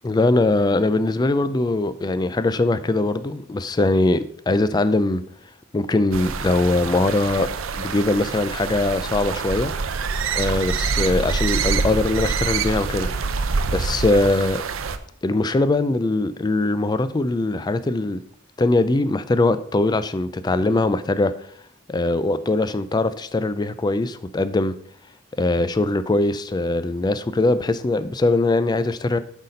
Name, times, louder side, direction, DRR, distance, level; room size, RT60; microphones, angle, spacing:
voice 1, 0.0-5.2 5.7-7.5 7.7-9.7 10.4-13.1 13.7-14.6 15.2-18.2 18.6-21.3 21.9-24.7 25.4-29.2, left 2 dB, 20° left, 13 dB, 0.3 m, -21 dB
sound 1, 6.1-15.0, right 5 dB, 85° right, 0.5 m, -26 dB
8.1 x 4.1 x 5.1 m, 0.65 s
head